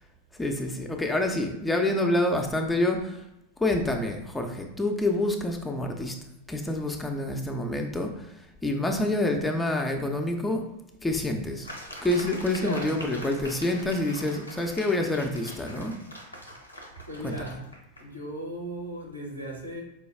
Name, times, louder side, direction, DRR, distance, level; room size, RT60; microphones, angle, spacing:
voice 1, 0.4-3.2 3.6-6.1 6.5-10.6 11.0-11.7 12.0-16.0 17.2-17.4, left 1 dB, 10° left, 3 dB, 0.4 m, -27 dB
sound 1, 11.6-18.1, equal, 80° left, 0.6 m, -43 dB
voice 2, 12.6-13.0 17.0-17.7 18.0-19.8, right 1 dB, 85° right, -1 dB, 0.9 m, -37 dB
4.6 x 2.2 x 3.2 m, 0.88 s
figure-of-eight pair, 90°, 0 cm